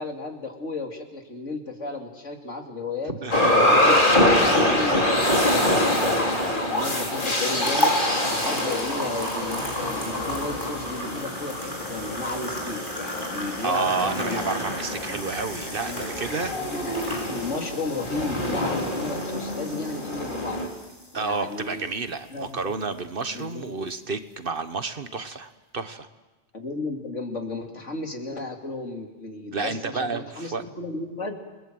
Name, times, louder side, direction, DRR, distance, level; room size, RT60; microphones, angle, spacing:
voice 1, 0.0-3.1 3.5-7.9 8.3-14.4 15.8-16.0 16.3-20.6 21.1-21.9 22.3-22.6 23.3-23.7 26.5-31.4, left 3 dB, 85° left, 2 dB, 3.1 m, -34 dB
voice 2, 3.1-3.5 13.6-16.5 18.7-18.8 21.1-26.1 29.5-30.6, right 4 dB, 50° right, 10 dB, 1.3 m, -30 dB
sound 1, 3.3-20.7, left 1 dB, 45° left, 3.6 m, -25 dB
sound 2, 7.6-22.8 23.2-23.4 23.9-24.0, equal, 20° left, 5.7 m, -33 dB
29.0 x 20.5 x 7.8 m, 1.2 s
omnidirectional pair, 1.2 m